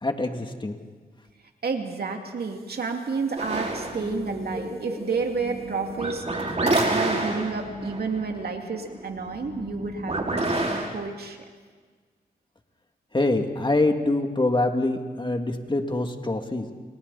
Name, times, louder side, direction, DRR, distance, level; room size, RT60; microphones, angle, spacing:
voice 1, 0.0-0.8 13.1-16.7, left 2 dB, 30° left, 4 dB, 2.5 m, -25 dB
voice 2, 1.6-6.3 6.6-10.2 10.9-11.4, right 4 dB, 75° right, 3 dB, 2.6 m, -30 dB
sound 1, 3.4-10.9, right 2 dB, 45° right, 4.9 m, -29 dB
29.5 x 29.0 x 4.2 m, 1.5 s
cardioid pair, 55°, 16 cm